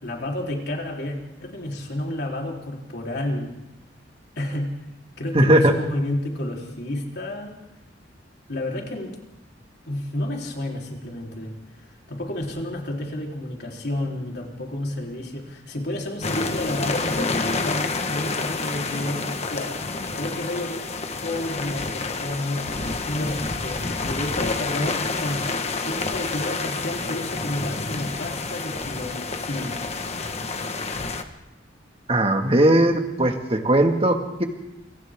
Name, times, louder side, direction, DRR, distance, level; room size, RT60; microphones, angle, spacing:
voice 1, 0.0-3.5 4.4-4.7 5.2-7.6 8.5-9.2 9.9-19.8 20.1-20.9 21.2-22.7 23.1-25.5 25.8-30.0, left 1 dB, 60° left, 0 dB, 3.9 m, -31 dB
voice 2, 5.3-5.7 32.1-34.4, right 1 dB, 30° right, 4 dB, 2.0 m, -18 dB
sound 1, 16.2-31.2, left 3 dB, 35° left, 1.4 m, -29 dB
28.0 x 25.0 x 3.7 m, 0.93 s
head